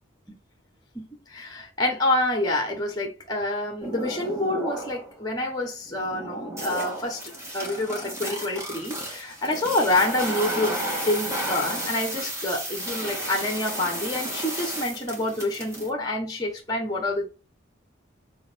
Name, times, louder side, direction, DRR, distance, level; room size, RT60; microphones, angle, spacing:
voice 1, 0.9-17.2, left 1 dB, 20° left, 1.5 m, -27 dB
sound 1, 3.8-5.1 5.6-15.9, right 1 dB, 15° right, 2.8 m, -32 dB
6.8 x 4.5 x 5.3 m
head